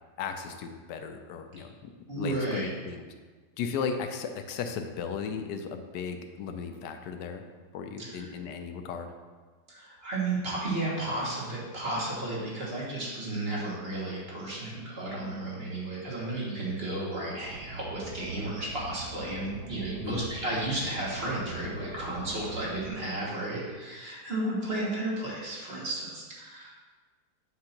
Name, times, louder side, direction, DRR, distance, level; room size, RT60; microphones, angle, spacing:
voice 1, 0.2-3.1 3.6-7.4 7.7-9.1 20.0-20.3, left 6 dB, 85° left, 7 dB, 1.2 m, -36 dB
voice 2, 2.1-2.7 8.0-8.1 9.7-26.7, right 2 dB, 40° right, -5 dB, 1.6 m, -33 dB
Car, 17.4-22.9, right 3 dB, 75° right, 1.3 m, -43 dB
7.8 x 2.8 x 5.7 m, 1.4 s
omnidirectional pair, 1.8 m